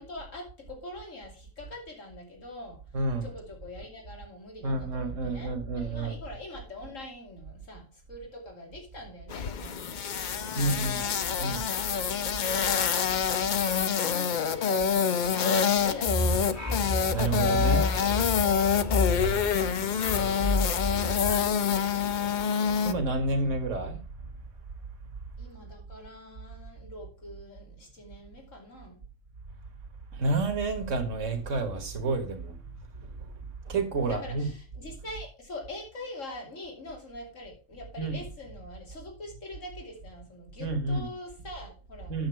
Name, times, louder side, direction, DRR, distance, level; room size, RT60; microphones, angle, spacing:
voice 1, 0.0-2.8 3.2-9.9 10.3-11.6 13.6-16.3 17.1-23.4 25.4-29.0 34.0-42.2, left 1 dB, 75° left, 3.1 m, -44 dB
voice 2, 2.9-3.3 4.6-6.2 10.6-11.0 11.4-11.6 17.1-17.9 22.8-24.0 30.1-32.6 33.0-33.3 33.7-34.5 38.0-38.2 40.6-41.1 42.1-42.3, right 3 dB, 70° right, 1.9 m, -29 dB
sound 1, 9.3-22.9, left 7 dB, 50° left, 0.6 m, -27 dB
sound 2, 16.0-22.3, left 2 dB, 15° left, 1.2 m, -30 dB
8.8 x 7.3 x 4.5 m
omnidirectional pair, 1.4 m